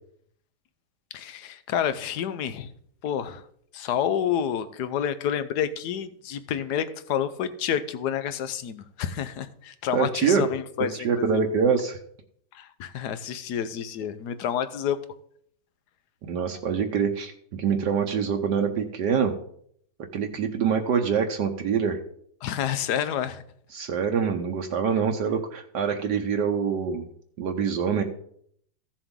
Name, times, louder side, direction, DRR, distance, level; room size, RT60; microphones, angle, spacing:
voice 1, 1.1-2.7 3.0-3.4 3.7-11.4 12.5-15.0 22.4-23.4, left 9 dB, 70° left, 12 dB, 1.3 m, -29 dB
voice 2, 9.9-10.4 11.0-12.0 16.3-19.3 20.1-22.0 23.7-27.0 27.4-28.0, right 6 dB, 70° right, 4 dB, 1.4 m, -25 dB
15.0 x 7.0 x 3.7 m, 0.66 s
omnidirectional pair, 1.9 m